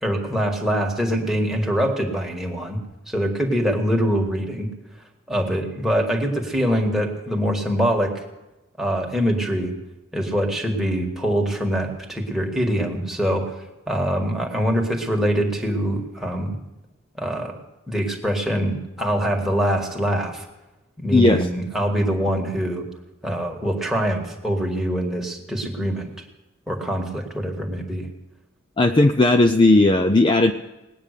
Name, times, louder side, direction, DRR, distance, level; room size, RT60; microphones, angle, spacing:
voice 1, 0.0-2.8 3.1-4.7 5.3-8.2 8.8-9.7 10.1-13.5 13.9-16.6 17.2-17.6 17.9-20.4 21.0-22.9 23.2-26.1 26.7-28.1, equal, ahead, 0 dB, 1.7 m, -24 dB
voice 2, 21.1-21.5 28.8-30.5, left 2 dB, 25° left, 6 dB, 0.5 m, -16 dB
19.0 x 9.2 x 6.7 m, 1.0 s
head